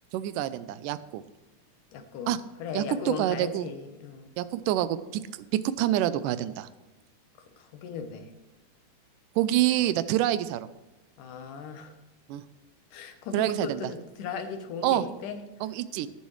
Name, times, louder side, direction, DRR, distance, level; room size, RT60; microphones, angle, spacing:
voice 1, 0.1-1.2 2.3-2.4 2.7-3.7 4.4-5.2 5.5-6.7 9.4-10.7 12.3-12.4 13.3-13.8 14.8-15.1 15.6-16.1, right 13 dB, 85° right, 14 dB, 2.2 m, -27 dB
voice 2, 1.9-2.3 2.6-4.3 7.6-8.3 11.2-11.9 12.9-15.4, left 6 dB, 80° left, 7 dB, 2.6 m, -37 dB
18.5 x 7.1 x 3.2 m, 1.1 s
omnidirectional pair, 3.7 m